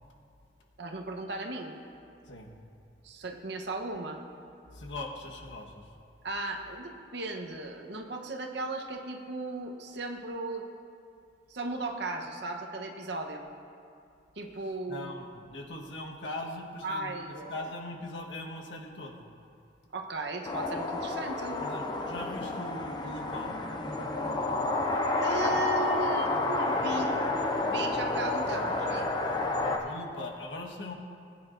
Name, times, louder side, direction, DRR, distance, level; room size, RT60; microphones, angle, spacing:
voice 1, 0.8-1.7 3.0-4.2 6.2-10.7 11.5-13.4 14.4-15.1 16.8-17.7 19.9-21.6 25.2-27.2 27.6-29.1, right 2 dB, 65° right, 3 dB, 0.9 m, -36 dB
voice 2, 4.7-5.9 14.9-17.1 17.5-19.3 21.6-23.5 29.6-30.9, left 2 dB, 85° left, 0 dB, 1.3 m, -40 dB
sound 1, 20.4-29.8, left 2 dB, 25° left, 0.7 m, -30 dB
19.0 x 9.4 x 2.6 m, 2.5 s
head